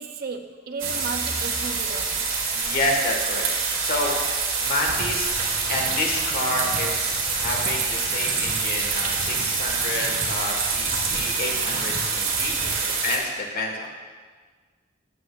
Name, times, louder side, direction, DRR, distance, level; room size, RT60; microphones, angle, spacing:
voice 1, 0.0-2.3 4.0-4.3 12.5-13.1, right 4 dB, 50° right, 6 dB, 0.6 m, -36 dB
sound 1, 0.8-11.0 11.5-12.3, equal, 5° right, 0.9 m, -46 dB
sound 2, 0.8-13.2, right 5 dB, 90° right, 2.2 m, -26 dB
voice 2, 2.5-4.1 4.6-5.3 5.7-12.6 13.0-13.9, left 2 dB, 50° left, 1 dB, 1.4 m, -29 dB
sound 3, 4.8-12.7, equal, 75° left, 1.4 m, -39 dB
14.0 x 8.2 x 2.4 m, 1.5 s
head